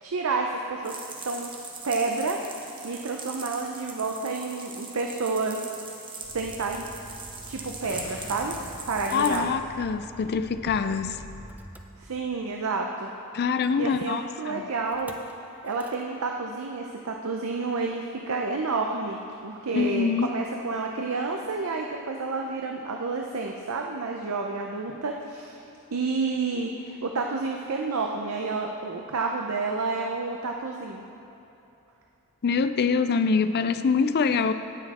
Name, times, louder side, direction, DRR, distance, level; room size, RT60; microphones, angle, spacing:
voice 1, 0.0-0.9 1.2-1.6 1.8-2.4 2.8-5.7 6.3-6.9 7.5-8.6 8.8-9.6 12.0-13.1 13.8-15.2 15.6-19.2 19.4-25.6 25.9-31.0, right 3 dB, 70° right, 2 dB, 0.6 m, -30 dB
sound 1, 0.8-9.4, right 3 dB, 20° right, 1.1 m, -41 dB
Motor vehicle (road), 6.2-12.6 14.9-15.3 15.7-16.0, right 1 dB, 5° right, 0.5 m, -46 dB
sound 2, 7.8-9.9, left 1 dB, 65° left, 1.8 m, -45 dB
voice 2, 9.1-11.2 13.3-14.7 19.7-20.3 32.4-34.5, left 5 dB, 45° left, 11 dB, 0.4 m, -25 dB
17.0 x 6.3 x 4.2 m, 2.9 s
head